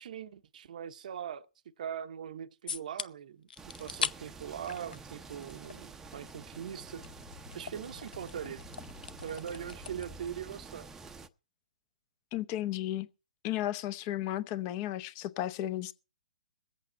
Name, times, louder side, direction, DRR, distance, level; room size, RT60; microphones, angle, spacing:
voice 1, 0.0-1.5 1.8-3.5 3.8-7.0 7.5-8.6 9.2-10.9, right 9 dB, 60° right, 0.8 m, -41 dB
sound 1, 2.7-3.1 3.5-4.1 4.4-5.8 6.0-10.2, left 6 dB, 75° left, 0.7 m, -41 dB
sound 2, 3.6-11.3, right 4 dB, 10° right, 0.7 m, -49 dB
voice 2, 12.3-13.1 13.4-15.9, left 13 dB, 30° left, 0.8 m, -34 dB
21.5 x 8.3 x 4.4 m
hypercardioid pair, 140°, 5 cm